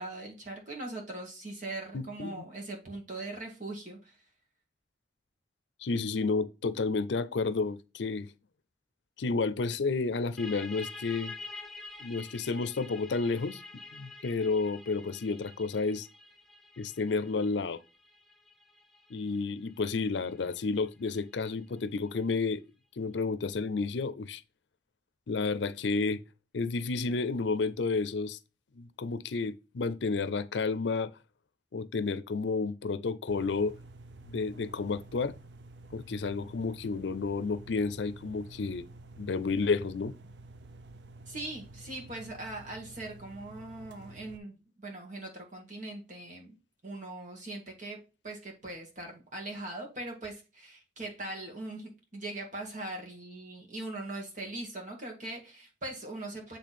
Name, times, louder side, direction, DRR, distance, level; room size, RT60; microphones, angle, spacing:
voice 1, 0.0-4.2 41.3-46.5 46.8-48.0 48.2-56.6, right 2 dB, 45° right, 1.7 m, -41 dB
voice 2, 1.9-2.4 5.8-8.3 9.2-11.3 12.0-13.6 13.9-16.1 16.8-17.8 19.1-22.6 23.0-24.4 25.3-26.2 26.5-28.4 28.8-31.1 31.7-33.7 34.3-35.4 35.9-38.9 39.2-40.1, left 4 dB, 85° left, 0.5 m, -31 dB
sound 1, 10.4-21.7, left 2 dB, ahead, 0.5 m, -48 dB
sound 2, 33.3-44.4, right 2 dB, 75° right, 0.6 m, -50 dB
8.3 x 3.3 x 4.2 m
head